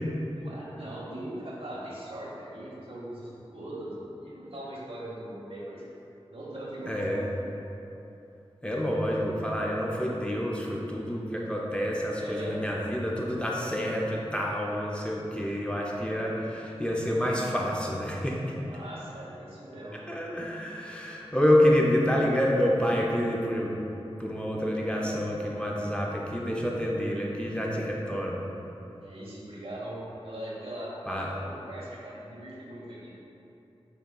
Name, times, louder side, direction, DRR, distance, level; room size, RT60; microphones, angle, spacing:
voice 1, 0.3-3.9 4.2-5.8 6.3-7.0 7.3-7.4 11.6-11.7 12.2-12.6 18.6-20.0 29.0-33.1, right 1 dB, 60° right, -5 dB, 0.8 m, -40 dB
voice 2, 6.9-7.3 8.6-18.6 20.1-23.8 24.2-28.4 31.1-31.3, equal, 10° left, -3 dB, 0.4 m, -28 dB
5.1 x 2.8 x 2.2 m, 2.9 s
wide cardioid pair, 50°, 11 cm